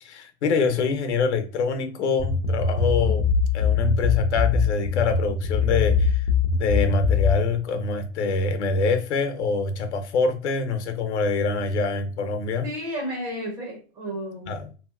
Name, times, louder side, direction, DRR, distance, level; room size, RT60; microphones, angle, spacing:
voice 1, 0.0-3.3 3.5-6.2 6.6-12.7 14.5-14.7, left 4 dB, 75° left, 0.7 m, -25 dB
sound 1, 2.2-7.4, left 5 dB, 30° left, 0.4 m, -22 dB
voice 2, 2.7-3.2 12.6-14.6, equal, 30° right, 0.6 m, -33 dB
2.9 x 2.8 x 2.3 m
hypercardioid pair, 150°, 34 cm